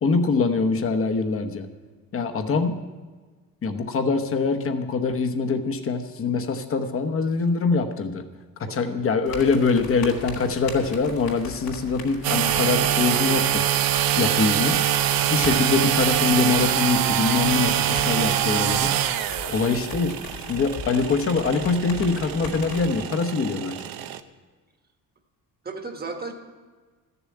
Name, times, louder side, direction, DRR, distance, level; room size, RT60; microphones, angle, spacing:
voice 1, 0.0-1.7 2.1-2.8 3.6-8.2 8.6-13.6 14.2-14.8 15.3-18.9 19.5-20.1 20.5-23.8, left 4 dB, 40° left, 6 dB, 1.0 m, -23 dB
sound 1, 9.3-23.1, left 4 dB, 80° left, 3.1 m, -40 dB
sound 2, 12.2-24.2, right 11 dB, 80° right, 0.7 m, -24 dB
voice 2, 25.6-26.3, right 4 dB, 25° right, 5 dB, 1.3 m, -35 dB
14.0 x 7.0 x 8.5 m, 1.4 s
cardioid pair, 145°, 35 cm